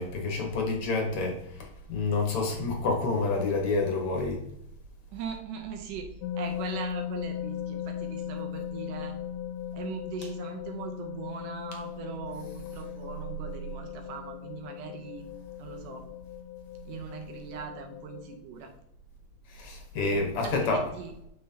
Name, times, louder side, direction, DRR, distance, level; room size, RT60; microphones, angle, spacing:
voice 1, 0.0-4.4 19.5-20.8, left 3 dB, 55° left, 1 dB, 1.7 m, -28 dB
voice 2, 5.1-9.2 9.7-15.2 15.6-16.0 16.9-18.7 20.4-21.1, right 6 dB, 75° right, 3 dB, 2.3 m, -40 dB
sound 1, 6.2-18.4, left 10 dB, 85° left, 2.3 m, -38 dB
7.8 x 5.7 x 2.8 m, 0.77 s
omnidirectional pair, 4.0 m